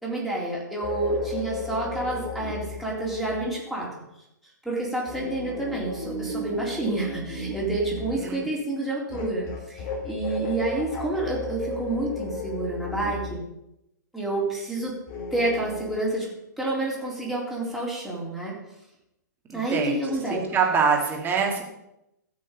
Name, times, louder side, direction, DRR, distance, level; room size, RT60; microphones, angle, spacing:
voice 1, 0.0-3.9 4.6-13.4 14.1-15.0 15.3-16.3 16.6-18.5 19.5-20.4, right 2 dB, ahead, -4 dB, 3.9 m, -29 dB
sound 1, 0.8-3.5 5.1-8.3 9.1-13.4 15.1-16.0, left 2 dB, 40° left, 3.1 m, -34 dB
voice 2, 8.2-8.5 19.5-20.0 20.3-21.6, right 6 dB, 20° right, 0 dB, 2.7 m, -24 dB
15.5 x 6.4 x 5.5 m, 0.86 s
hypercardioid pair, 120°, 10 cm